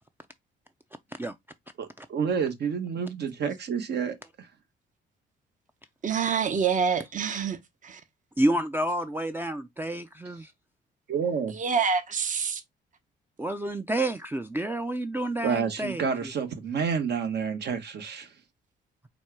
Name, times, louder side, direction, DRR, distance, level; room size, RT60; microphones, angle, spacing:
voice 1, 1.8-4.1 11.1-11.6 15.4-18.3, right 6 dB, 60° right, 1.2 m, -29 dB
voice 2, 6.0-7.6 7.8-8.0 11.5-12.6, right 6 dB, 40° right, 0.9 m, -26 dB
voice 3, 8.4-10.5 13.4-16.3, right 1 dB, 10° right, 0.4 m, -29 dB
4.3 x 2.2 x 4.6 m
cardioid pair, 90°, 20 cm